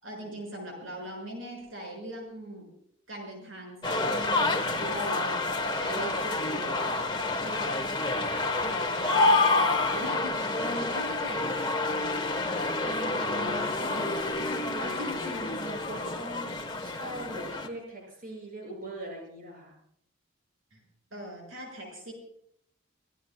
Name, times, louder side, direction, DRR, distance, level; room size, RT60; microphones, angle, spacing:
voice 1, 0.0-2.7 3.1-5.4 5.7-6.9 7.4-11.7 12.8-15.2 20.7-20.8 21.1-22.1, equal, 80° right, 1 dB, 6.7 m, -40 dB
sound 1, 3.8-17.7, left 3 dB, 25° left, 1.3 m, -28 dB
voice 2, 7.2-7.7 14.6-19.8, right 1 dB, 45° right, -1 dB, 6.9 m, -41 dB
25.5 x 18.0 x 2.4 m, 0.67 s
head